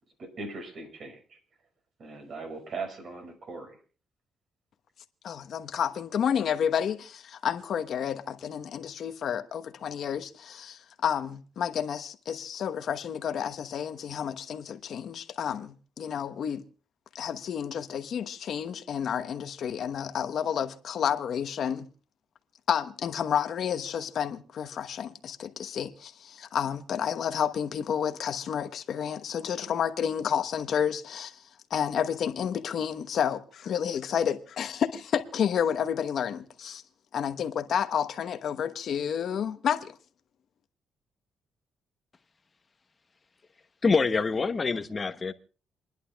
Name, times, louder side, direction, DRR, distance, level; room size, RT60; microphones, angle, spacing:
voice 1, 0.2-1.4 2.0-3.8, right 3 dB, 60° right, 5.7 m, -39 dB
voice 2, 5.2-16.6 17.1-21.9 22.7-31.4 31.7-36.8 37.1-40.0, left 8 dB, 65° left, 1.1 m, -30 dB
voice 3, 43.8-45.3, left 4 dB, 30° left, 1.0 m, -25 dB
29.0 x 11.0 x 2.4 m
cardioid pair, 90°, 0 cm